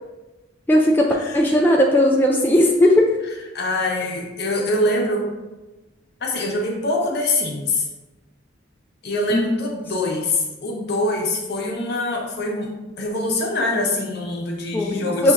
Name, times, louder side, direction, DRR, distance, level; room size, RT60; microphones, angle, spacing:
voice 1, 0.7-3.1 9.3-9.6 14.7-15.3, left 1 dB, 10° left, -1 dB, 0.3 m, -17 dB
voice 2, 3.5-5.3 6.2-7.9 9.0-15.3, left 2 dB, 60° left, -1 dB, 0.9 m, -24 dB
6.9 x 2.8 x 2.4 m, 1.1 s
head